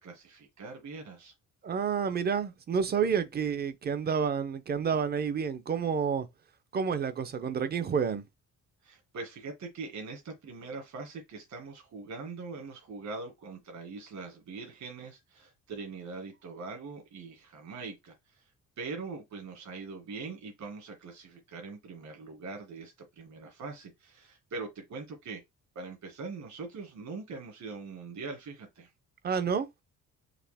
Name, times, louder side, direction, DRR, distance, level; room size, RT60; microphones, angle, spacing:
voice 1, 0.0-1.3 8.8-18.4 18.8-25.4 25.8-28.9, right 4 dB, 60° right, 1.8 m, -42 dB
voice 2, 1.6-6.3 6.7-8.2 29.2-29.7, right 6 dB, 30° right, 0.5 m, -29 dB
4.9 x 2.8 x 3.4 m
cardioid pair, 160°, 31 cm